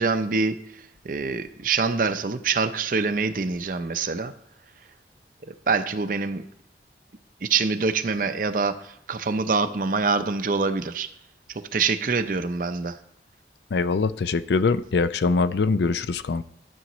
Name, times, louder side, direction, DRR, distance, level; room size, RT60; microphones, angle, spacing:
voice 1, 0.0-4.3 5.5-6.4 7.4-11.1 11.5-13.0, right 4 dB, 50° right, 10 dB, 0.5 m, -25 dB
voice 2, 13.7-16.4, left 4 dB, 75° left, 14 dB, 0.4 m, -23 dB
12.5 x 8.0 x 3.0 m, 0.71 s
head